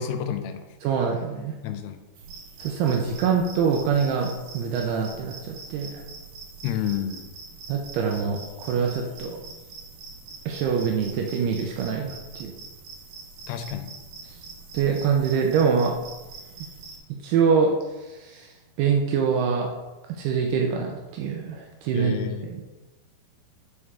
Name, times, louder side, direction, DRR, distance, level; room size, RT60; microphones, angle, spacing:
voice 1, 0.0-0.7 1.6-2.0 6.6-7.3 13.5-14.0 21.9-22.5, left 9 dB, 85° left, 8 dB, 2.6 m, -30 dB
voice 2, 0.8-1.6 2.6-5.9 7.7-9.4 10.5-12.5 14.3-14.4 14.7-16.0 17.2-19.7 20.1-22.1 22.5-22.6, right 6 dB, 80° right, 1 dB, 2.6 m, -25 dB
sound 1, 2.1-17.0, right 4 dB, 65° right, 2.1 m, -43 dB
11.0 x 4.8 x 3.4 m, 1.1 s
omnidirectional pair, 4.8 m